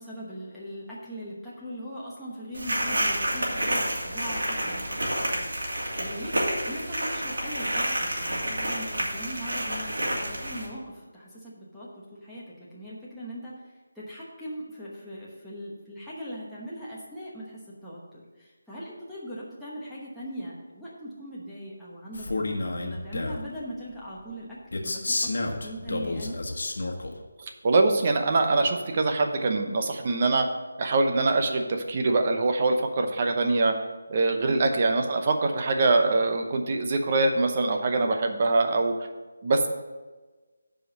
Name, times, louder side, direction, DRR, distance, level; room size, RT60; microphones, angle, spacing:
voice 1, 0.0-13.5 13.9-26.3 34.4-34.7, equal, ahead, -11 dB, 1.0 m, -40 dB
sound 1, 2.5-10.7, right 1 dB, 80° right, 2.7 m, -29 dB
Male speech man speaking, 22.1-23.5 24.7-27.1, left 2 dB, 60° left, 1.2 m, -30 dB
voice 2, 27.4-30.5 30.8-33.7 34.1-38.9 39.4-39.7, right 3 dB, 30° right, 4 dB, 0.8 m, -23 dB
7.7 x 5.1 x 7.4 m, 1.3 s
figure-of-eight pair, 170°, 0 cm